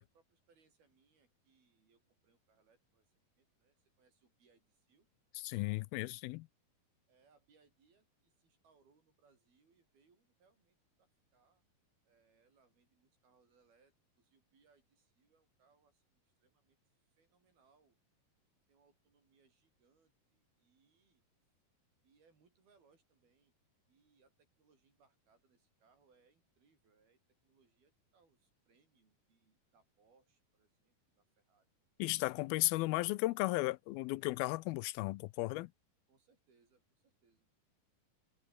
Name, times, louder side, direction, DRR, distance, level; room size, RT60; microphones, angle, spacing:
voice 1, 0.0-5.1 7.1-11.6 12.0-18.0 18.7-21.2 22.0-23.5 23.9-31.7 36.1-37.5, right 5 dB, 85° right, 8.1 m, -73 dB
voice 2, 5.4-6.5 32.0-35.7, left 21 dB, 85° left, 2.5 m, -35 dB
omnidirectional pair, 4.2 m